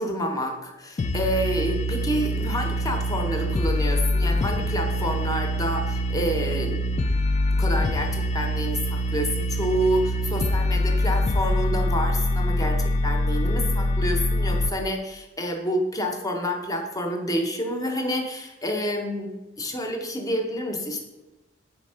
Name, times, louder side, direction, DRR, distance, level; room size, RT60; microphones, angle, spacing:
voice 1, 0.0-6.8 7.6-21.0, equal, 20° left, 3 dB, 0.7 m, -28 dB
sound 1, 1.0-14.7, left 1 dB, 35° left, 0.3 m, -24 dB
4.3 x 4.1 x 5.5 m, 1.1 s
head